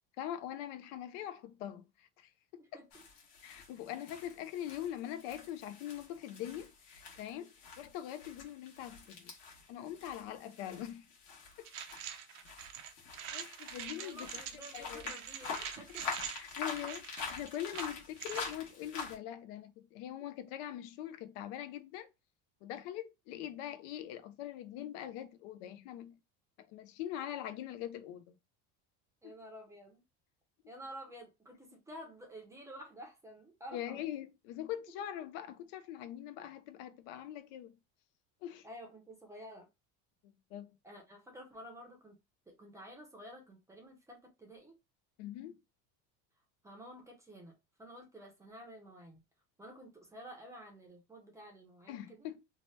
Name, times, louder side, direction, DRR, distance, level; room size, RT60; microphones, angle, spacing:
voice 1, 0.2-2.8 3.4-9.3 9.7-11.1 11.6-11.7 13.3-14.4 14.7-15.1 16.3-22.1 22.6-26.2 26.6-28.4 29.2-29.4 33.7-37.7 38.4-38.7 40.5-40.7 45.2-45.6 51.9-52.4, left 11 dB, 85° left, 0.5 m, -43 dB
voice 2, 2.6-3.0 14.0-16.4 29.2-30.0 30.7-34.1 38.6-39.7 40.8-42.2 42.5-44.7 46.6-49.2 49.6-52.3, equal, 10° right, 0.5 m, -51 dB
sound 1, 2.9-19.2, left 5 dB, 50° left, 1.1 m, -46 dB
sound 2, 11.6-18.5, right 9 dB, 55° right, 0.5 m, -45 dB
2.8 x 2.1 x 3.1 m
cardioid pair, 160°, 35 cm